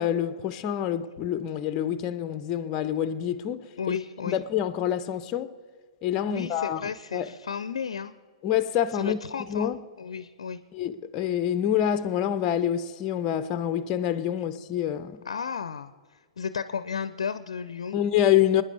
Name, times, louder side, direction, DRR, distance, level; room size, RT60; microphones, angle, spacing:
voice 1, 0.0-4.0 4.2-5.5 6.0-7.3 8.4-9.2 9.5-9.8 10.7-15.2 17.9-18.6, left 10 dB, 30° left, 0.6 m, -26 dB
voice 2, 3.8-4.4 6.3-8.1 8.9-9.7 10.0-10.6 15.2-15.9 16.4-18.0, left 6 dB, 70° left, 0.6 m, -33 dB
26.0 x 10.0 x 3.4 m
figure-of-eight pair, 110°, 3 cm